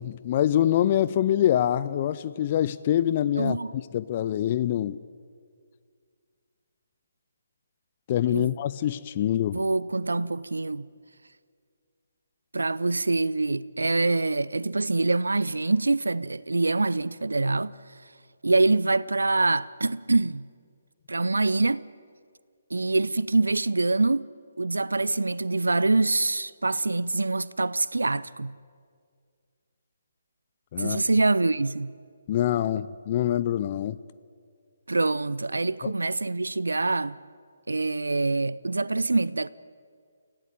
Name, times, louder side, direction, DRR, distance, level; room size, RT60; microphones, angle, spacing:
voice 1, 0.0-5.0 8.1-9.7 30.7-31.0 32.3-34.0 35.8-35.9, left 11 dB, 35° left, 0.5 m, -25 dB
voice 2, 3.4-3.7 8.3-8.5 9.5-10.9 12.5-17.7 18.4-20.5 21.1-21.8 22.7-24.3 24.6-28.5 30.8-31.9 34.9-37.2 37.7-39.5, right 3 dB, 75° right, 0.5 m, -25 dB
25.5 x 16.5 x 9.1 m
figure-of-eight pair, 140°, 0 cm